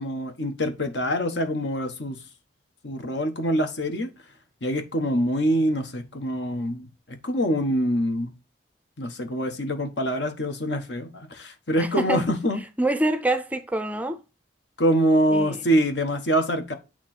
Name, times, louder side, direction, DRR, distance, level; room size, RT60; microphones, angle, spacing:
voice 1, 0.0-2.2 2.8-4.1 4.6-8.3 9.0-12.6 14.8-16.7, equal, 70° left, 1.2 m, -25 dB
voice 2, 11.8-12.2 12.8-14.2 15.3-15.6, right 1 dB, 10° right, 0.5 m, -26 dB
8.5 x 3.0 x 4.3 m
head